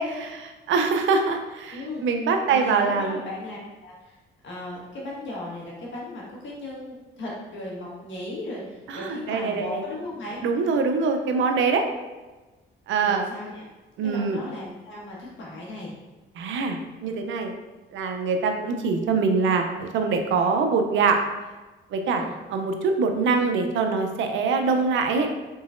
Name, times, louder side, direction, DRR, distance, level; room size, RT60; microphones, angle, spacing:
voice 1, 0.0-3.2 8.9-9.8 10.4-11.9 12.9-13.2 14.0-14.4 16.4-17.5 17.9-21.2 21.9-22.2 22.5-25.3, right 4 dB, 75° right, 5 dB, 0.5 m, -24 dB
voice 2, 1.7-2.0 2.5-4.2 4.4-10.4 13.0-13.6 14.0-15.9 22.0-22.3, left 1 dB, 70° left, -4 dB, 1.4 m, -36 dB
3.8 x 3.8 x 2.5 m, 1.2 s
cardioid pair, 90°, 20 cm